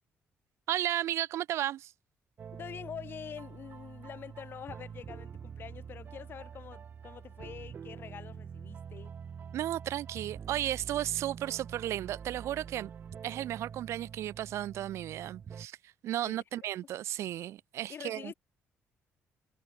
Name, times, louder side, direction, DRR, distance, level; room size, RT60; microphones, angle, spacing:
voice 1, 0.7-1.9 9.5-12.9 13.2-18.3, right 13 dB, 70° right, 1.2 m, -34 dB
sound 1, 2.4-15.7, right 7 dB, 40° right, 0.7 m, -46 dB
voice 2, 2.5-9.2 16.2-16.7 17.9-18.3, left 8 dB, 50° left, 7.0 m, -45 dB
cardioid pair, 115°, 5 cm